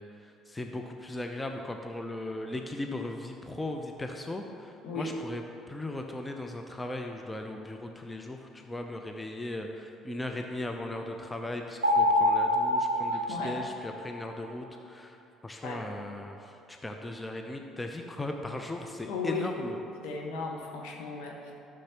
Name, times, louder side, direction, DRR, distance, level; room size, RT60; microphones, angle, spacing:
voice 1, 0.0-5.4 5.7-15.2 15.4-19.8, left 1 dB, 15° left, 3 dB, 0.7 m, -38 dB
sound 1, 11.8-14.3, left 1 dB, 90° right, 0.5 m, -26 dB
voice 2, 13.1-13.6 15.6-15.8 19.1-19.5 20.0-21.5, left 4 dB, 65° left, 0 dB, 1.2 m, -36 dB
13.0 x 6.4 x 3.0 m, 2.7 s
figure-of-eight pair, 50°, 0 cm